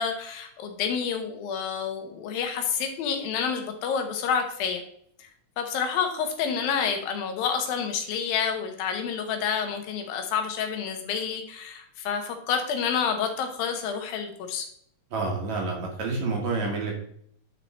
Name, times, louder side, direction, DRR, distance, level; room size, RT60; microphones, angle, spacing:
voice 1, 0.0-4.8 5.2-5.3 5.6-14.7, left 7 dB, 85° left, 5 dB, 2.9 m, -29 dB
voice 2, 15.1-17.0, right 3 dB, 60° right, 0 dB, 2.6 m, -28 dB
9.8 x 4.2 x 4.2 m, 0.65 s
omnidirectional pair, 4.1 m